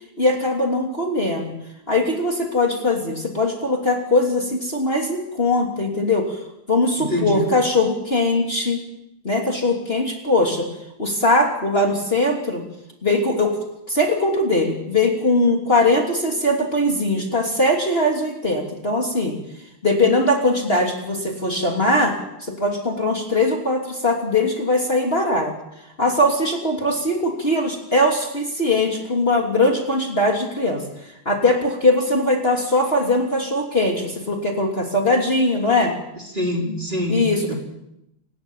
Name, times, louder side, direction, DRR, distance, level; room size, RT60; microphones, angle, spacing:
voice 1, 0.2-1.5 1.9-6.4 6.7-8.8 9.2-10.7 11.0-12.6 13.0-13.6 13.9-19.4 19.8-25.5 26.0-30.8 31.2-35.9 37.1-37.5, left 2 dB, 25° left, 1 dB, 3.3 m, -20 dB
voice 2, 7.0-7.5 36.3-37.2 37.5-37.6, left 1 dB, 20° right, 1 dB, 4.1 m, -24 dB
29.0 x 18.0 x 7.3 m, 0.83 s
omnidirectional pair, 2.3 m